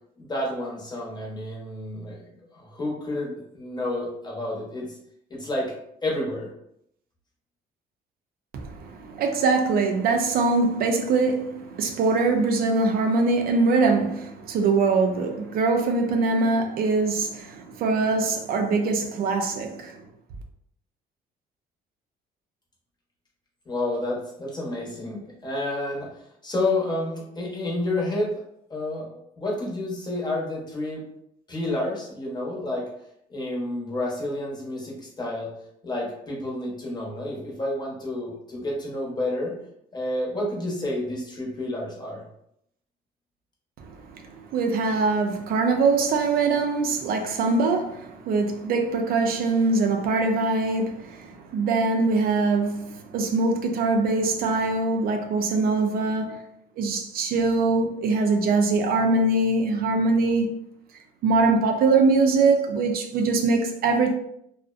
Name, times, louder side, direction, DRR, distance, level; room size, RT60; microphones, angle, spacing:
voice 1, 0.2-2.2 2.5-5.0 5.3-5.8 6.0-6.5 23.7-28.4 28.7-31.0 31.5-32.9 33.3-35.5 35.8-39.5 39.9-42.2, left 1 dB, 25° left, 0.8 m, -30 dB
voice 2, 8.5-20.0 43.8-56.4 56.8-60.5 61.2-64.2, right 3 dB, 60° right, 0.4 m, -23 dB
2.5 x 2.0 x 2.3 m
cardioid pair, 110°, 17 cm